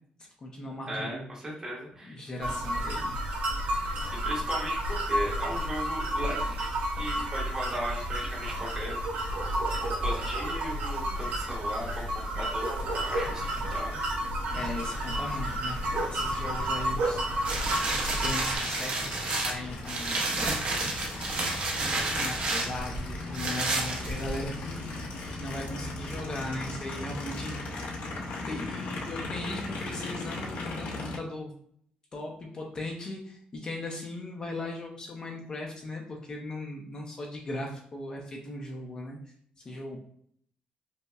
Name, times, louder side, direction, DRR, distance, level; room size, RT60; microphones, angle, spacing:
voice 1, 0.2-1.3 2.0-3.2 14.5-17.5 17.8-21.5 22.1-27.9 28.1-31.5 32.1-40.0, left 1 dB, 30° left, 0 dB, 0.5 m, -38 dB
voice 2, 0.9-2.2 4.2-6.6 7.0-9.0 9.7-13.4 13.7-14.0, equal, 25° right, -3 dB, 1.0 m, -37 dB
sound 1, 2.4-18.6, right 1 dB, 75° right, 1.4 m, -31 dB
Aircraft, 14.5-31.2, left 2 dB, 80° left, 0.7 m, -39 dB
sound 2, 17.4-24.6 25.1-25.2, right 2 dB, 45° right, 0.7 m, -30 dB
5.3 x 2.1 x 2.3 m, 0.64 s
cardioid pair, 170°, 3 cm